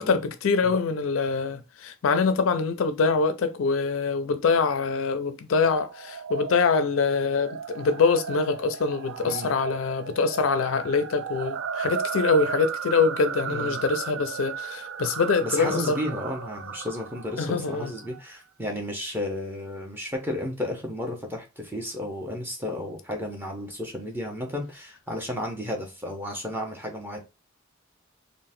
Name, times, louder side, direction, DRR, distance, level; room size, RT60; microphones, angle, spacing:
voice 1, 0.0-16.0 17.4-17.9, left 4 dB, 80° left, 0.4 m, -24 dB
sound 1, 5.8-18.2, right 6 dB, 70° right, 0.4 m, -35 dB
voice 2, 9.2-9.5 13.5-13.8 15.4-27.2, left 1 dB, 10° right, 0.8 m, -33 dB
3.7 x 2.1 x 2.6 m
head